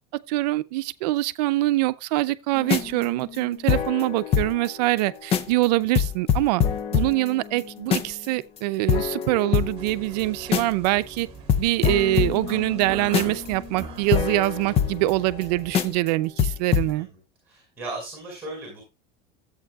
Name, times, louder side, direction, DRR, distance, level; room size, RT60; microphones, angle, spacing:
voice 1, 0.3-6.6 6.9-11.3 11.6-17.1, right 18 dB, 75° right, 0.6 m, -24 dB
sound 1, 2.6-4.7 5.0-5.1 5.3-5.6 5.9-8.3 8.6-8.7 8.9-10.9 11.2-11.3 11.5-15.4 15.7-16.1 16.4-16.9, left 8 dB, 30° left, 0.6 m, -25 dB
sound 2, 9.8-15.8, right 5 dB, 25° right, 2.0 m, -42 dB
voice 2, 12.5-12.8 17.0-17.1 17.5-18.8, right 2 dB, 10° right, 5.3 m, -37 dB
13.5 x 8.1 x 2.4 m
supercardioid pair, 155°, 21 cm